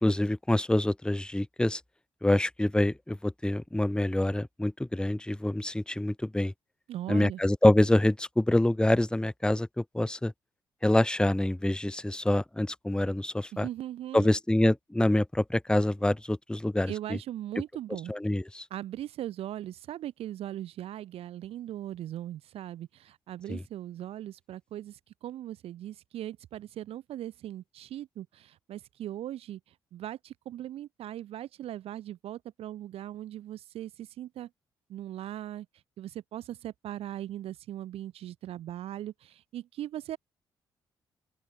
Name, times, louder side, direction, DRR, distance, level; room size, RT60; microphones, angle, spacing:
voice 1, 0.0-1.8 2.2-6.5 7.1-10.3 10.8-13.7 14.1-17.2 18.1-18.6 23.5-23.6, left 1 dB, 10° left, 1.3 m, -26 dB
voice 2, 6.9-7.4 13.5-14.3 16.9-18.1 18.7-34.5 34.9-40.2, right 12 dB, 65° right, 1.4 m, -39 dB
open air
hypercardioid pair, 40°, 11 cm